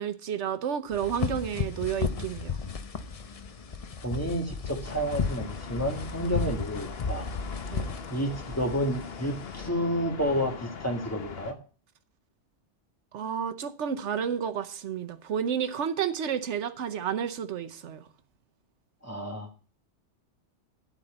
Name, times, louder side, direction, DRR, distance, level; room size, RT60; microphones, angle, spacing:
voice 1, 0.0-2.6 7.7-8.0 13.1-18.0, right 8 dB, 80° right, 1.1 m, -31 dB
sound 1, 0.9-9.7, left 5 dB, 40° left, 0.6 m, -35 dB
voice 2, 4.0-7.3 8.1-11.5 19.0-19.5, equal, 15° left, 1.5 m, -30 dB
sound 2, 4.8-11.5, left 6 dB, 60° left, 1.2 m, -41 dB
12.0 x 4.2 x 7.9 m
omnidirectional pair, 1.2 m